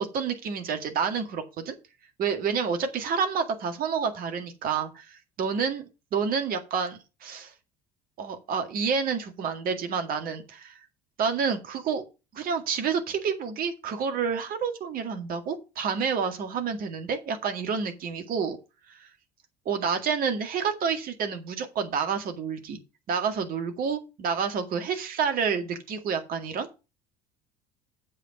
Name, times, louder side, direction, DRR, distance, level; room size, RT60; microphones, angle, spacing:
voice 1, 0.0-1.8 2.2-5.8 6.1-7.5 8.2-10.8 11.2-12.1 12.3-18.6 18.9-19.1 19.7-22.8 23.1-26.7, right 6 dB, 45° right, 7 dB, 2.0 m, -29 dB
7.9 x 5.5 x 6.1 m, 0.28 s
figure-of-eight pair, 60°, 21 cm